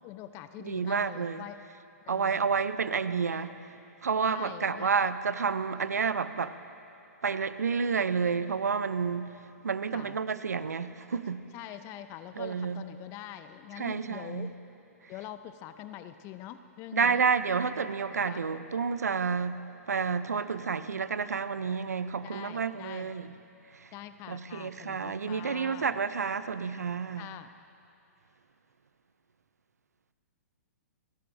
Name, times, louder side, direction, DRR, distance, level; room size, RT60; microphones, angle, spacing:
voice 1, 0.0-1.6 2.1-2.4 4.3-4.9 9.9-10.2 11.5-14.5 15.1-17.2 18.1-18.5 22.2-23.1 23.9-25.9 27.2-27.5, left 12 dB, 30° left, 11 dB, 0.6 m, -44 dB
voice 2, 0.6-1.5 2.1-3.7 4.0-6.6 7.2-11.4 12.4-12.8 13.8-14.5 15.0-15.1 16.9-19.6 19.9-23.3 23.7-23.9 24.3-27.3, right 5 dB, 85° right, 13 dB, 0.5 m, -30 dB
29.5 x 12.0 x 2.6 m, 2.8 s
hypercardioid pair, 120°, 8 cm